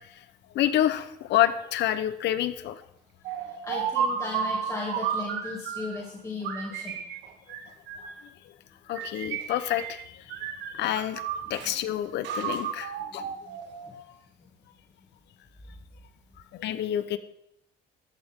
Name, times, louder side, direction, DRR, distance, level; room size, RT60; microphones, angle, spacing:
voice 1, 0.5-2.8 8.9-10.4 10.7-11.2 11.5-13.2 16.5-17.2, left 12 dB, 70° left, 12 dB, 1.0 m, -28 dB
sound 1, 3.2-6.0 6.4-8.2 8.9-10.0 10.3-11.7 12.2-14.0, right 7 dB, 85° right, 1.7 m, -33 dB
voice 2, 3.5-7.0 10.8-11.0 11.4-12.0 13.0-13.6 13.9-14.0 14.4-14.5, left 3 dB, 15° left, -3 dB, 2.6 m, -37 dB
14.0 x 13.0 x 3.7 m, 0.79 s
cardioid pair, 120°, 18 cm